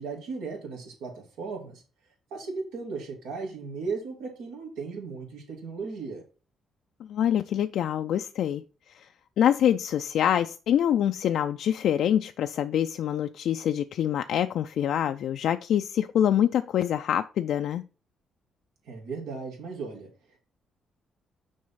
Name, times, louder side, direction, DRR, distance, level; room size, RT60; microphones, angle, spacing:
voice 1, 0.0-1.8 2.3-6.2 18.9-20.4, right 4 dB, 90° right, 2.4 m, -36 dB
voice 2, 7.1-8.6 8.9-9.1 9.4-17.9, left 10 dB, 75° left, 0.3 m, -25 dB
6.3 x 3.9 x 5.6 m
cardioid pair, 90°, 0 cm